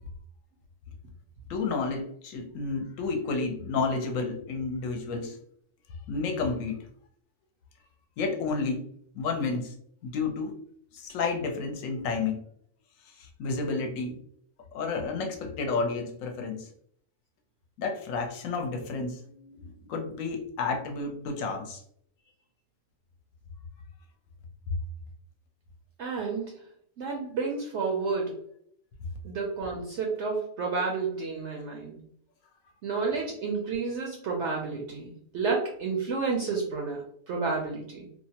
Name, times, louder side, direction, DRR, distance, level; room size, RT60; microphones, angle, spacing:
voice 1, 1.5-5.4 6.1-6.9 8.2-8.9 9.1-9.7 10.0-10.6 10.9-12.4 13.2-14.2 14.7-16.7 17.8-21.8, left 4 dB, 70° left, 3 dB, 1.0 m, -31 dB
voice 2, 26.0-26.5 27.0-28.4 29.2-32.0 32.8-38.1, right 4 dB, 65° right, 0 dB, 0.7 m, -31 dB
2.7 x 2.1 x 2.8 m, 0.64 s
omnidirectional pair, 1.5 m